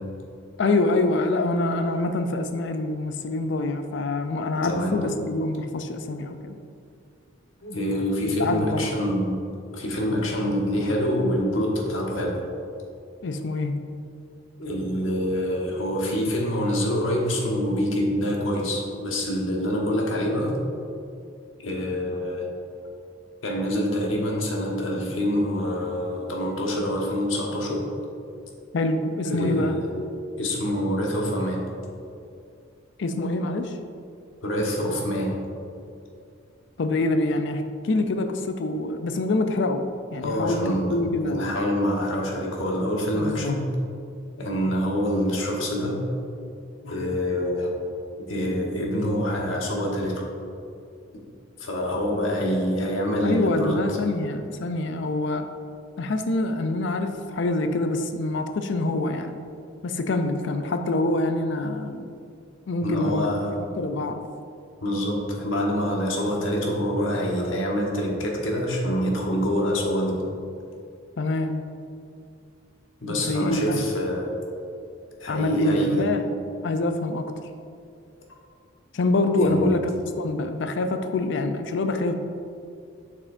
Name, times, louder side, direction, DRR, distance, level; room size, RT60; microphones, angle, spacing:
voice 1, 0.6-6.6 8.4-9.0 13.2-13.7 28.7-29.8 33.0-33.7 36.8-39.8 40.1-40.6 40.9-41.5 43.1-43.6 53.2-55.5 56.0-59.4 59.8-62.1 62.7-63.3 63.8-64.2 71.2-71.6 73.1-73.8 75.3-76.3 76.6-77.3 78.9-79.9 80.2-82.1, left 2 dB, 65° left, 7 dB, 0.5 m, -25 dB
voice 2, 4.6-5.0 7.6-9.4 9.7-12.4 14.6-20.6 21.6-22.4 23.4-27.9 29.2-29.9 30.4-31.6 34.4-35.3 40.2-43.6 44.4-46.0 46.8-47.7 48.2-50.2 51.6-53.8 62.8-63.5 64.8-70.2 73.0-74.3 75.2-76.0 79.3-79.7, equal, 85° left, -1 dB, 1.2 m, -26 dB
7.6 x 6.1 x 2.6 m, 2.5 s
head